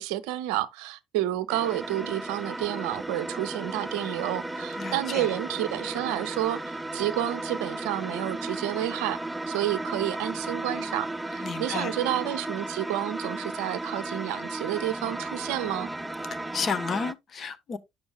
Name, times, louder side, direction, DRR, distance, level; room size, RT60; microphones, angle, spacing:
voice 1, 0.0-9.2 9.5-15.9, right 13 dB, 65° right, 0.5 m, -30 dB
sound 1, 1.5-17.1, right 2 dB, 10° right, 0.4 m, -35 dB
voice 2, 4.8-5.3 11.4-11.9 16.5-17.8, left 5 dB, 40° left, 0.8 m, -32 dB
9.3 x 7.0 x 2.2 m
figure-of-eight pair, 55°, 0 cm